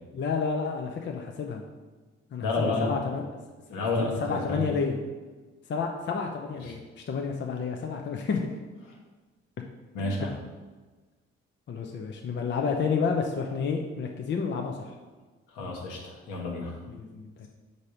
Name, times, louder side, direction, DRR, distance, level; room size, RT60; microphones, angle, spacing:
voice 1, 0.1-1.6 2.3-3.2 3.7-3.8 4.2-5.0 5.7-8.5 10.0-10.2 11.7-14.9 16.9-17.5, left 5 dB, 30° left, 2 dB, 0.6 m, -30 dB
voice 2, 2.4-3.0 3.7-4.6 6.6-6.8 9.9-10.4 15.5-16.7, left 2 dB, 60° left, -1 dB, 1.3 m, -30 dB
5.2 x 4.1 x 5.1 m, 1.3 s
figure-of-eight pair, 40°, 35 cm